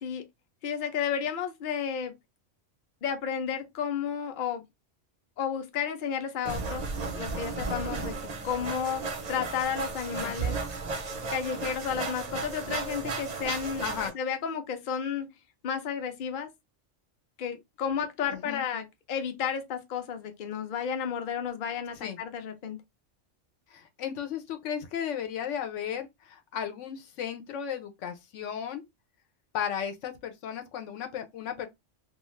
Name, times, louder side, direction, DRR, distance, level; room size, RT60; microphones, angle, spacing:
voice 1, 0.6-2.1 3.0-4.6 5.4-6.8 7.1-8.1 8.4-10.6 11.3-13.9 14.1-15.3 15.6-16.5 17.4-22.8, left 7 dB, 55° left, 0.6 m, -32 dB
sound 1, 6.5-14.1, right 4 dB, 50° right, 0.5 m, -34 dB
voice 2, 13.8-14.1 18.3-18.6 22.0-22.2 23.7-28.8 29.5-31.7, left 8 dB, 85° left, 1.0 m, -35 dB
2.4 x 2.4 x 3.0 m
omnidirectional pair, 1.2 m